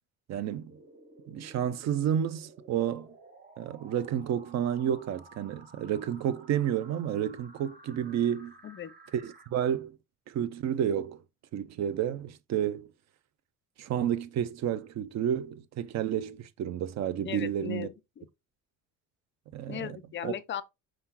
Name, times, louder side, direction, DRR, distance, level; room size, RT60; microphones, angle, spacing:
voice 1, 0.3-0.7 1.3-3.1 3.6-8.5 9.1-10.0 10.3-11.2 11.5-12.9 13.8-17.9 19.5-20.0 20.2-20.3, right 9 dB, 50° right, 0.5 m, -30 dB
sound 1, 0.7-9.5, right 2 dB, 25° right, 1.1 m, -54 dB
voice 2, 17.2-18.3 19.7-20.6, left 10 dB, 35° left, 0.5 m, -37 dB
4.7 x 3.7 x 2.8 m
cardioid pair, 115°, 35 cm